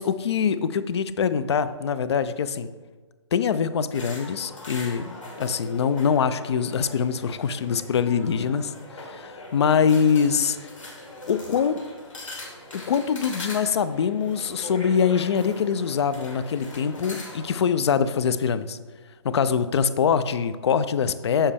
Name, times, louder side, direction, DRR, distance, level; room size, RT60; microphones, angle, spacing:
voice 1, 0.0-2.7 3.3-10.6 11.3-11.8 12.7-18.8 19.2-21.5, left 7 dB, 60° left, 13 dB, 0.4 m, -24 dB
sound 1, 3.9-17.5, left 1 dB, 85° left, 1.9 m, -41 dB
7.2 x 4.2 x 3.5 m, 1.4 s
hypercardioid pair, 145°, 16 cm